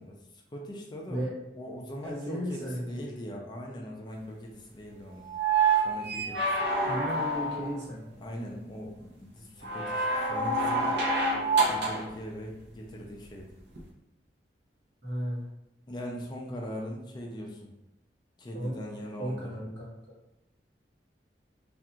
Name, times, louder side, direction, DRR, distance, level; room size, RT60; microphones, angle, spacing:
voice 1, 0.0-1.3 1.5-5.3 5.8-6.5 8.2-13.5 15.9-17.7 18.4-19.5, equal, 25° left, 0 dB, 0.4 m, -41 dB
voice 2, 2.0-3.0 6.8-8.0 15.0-15.5 18.5-18.8 19.2-19.9, equal, 90° right, -6 dB, 1.1 m, -34 dB
sound 1, 5.3-7.8 9.6-12.1 13.7-13.8, right 3 dB, 65° right, 0.6 m, -27 dB
2.4 x 2.2 x 2.8 m, 0.88 s
head